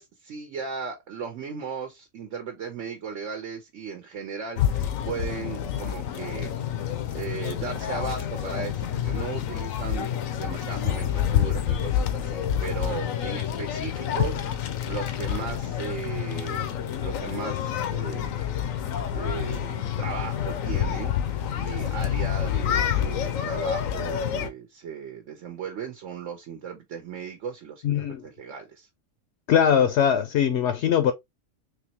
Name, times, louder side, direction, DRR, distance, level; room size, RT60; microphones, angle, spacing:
voice 1, 0.0-6.5 7.1-14.6 14.9-18.3 19.1-28.9, right 6 dB, 70° right, 1.2 m, -37 dB
sound 1, 4.6-24.5, left 9 dB, 85° left, 1.1 m, -28 dB
voice 2, 27.8-28.2 29.5-31.1, left 8 dB, 65° left, 0.8 m, -21 dB
3.8 x 3.0 x 2.8 m
omnidirectional pair, 1.4 m